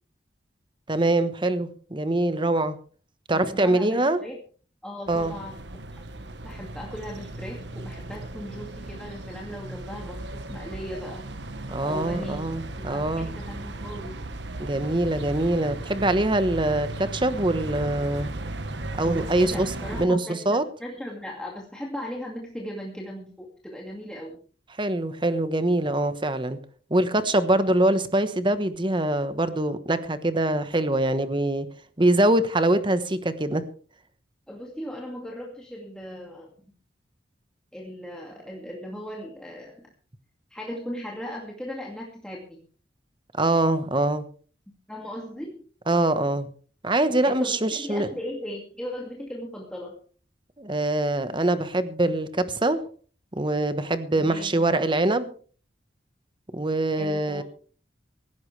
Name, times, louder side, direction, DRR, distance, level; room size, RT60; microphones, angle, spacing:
voice 1, 0.9-2.8 3.3-4.2 5.1-5.3 11.7-13.3 14.6-18.3 19.0-19.7 20.0-20.2 20.5-20.6 24.8-26.6 26.9-31.7 32.0-33.6 43.4-44.2 45.9-46.5 46.8-48.1 50.6-52.8 53.4-55.3 56.5-57.4, right 1 dB, 25° right, 11 dB, 1.2 m, -23 dB
voice 2, 3.3-4.4 4.8-6.0 6.4-11.3 11.8-12.5 12.8-14.2 19.4-24.4 34.5-36.5 37.7-39.9 40.5-42.6 44.9-45.6 47.2-50.0 54.1-54.7 57.0-57.4, equal, 5° left, -2 dB, 2.2 m, -38 dB
sound 1, 5.1-20.1, right 2 dB, 70° right, 1.3 m, -36 dB
17.5 x 15.5 x 3.3 m, 0.41 s
head